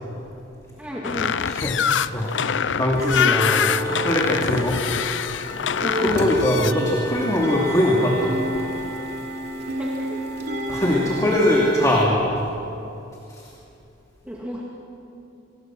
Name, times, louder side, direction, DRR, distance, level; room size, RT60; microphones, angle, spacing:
voice 1, 0.8-1.4 5.9-6.2 9.8-10.2 14.2-14.6, equal, 5° right, -5 dB, 2.2 m, -33 dB
sound 1, 1.0-6.7, left 7 dB, 70° left, 0.5 m, -24 dB
voice 2, 1.5-4.8 5.8-8.3 10.7-12.3, left 1 dB, 20° left, -3 dB, 2.5 m, -22 dB
sound 2, 2.9-12.0, equal, 60° right, 3.0 m, -29 dB
25.5 x 20.5 x 6.2 m, 2.8 s
head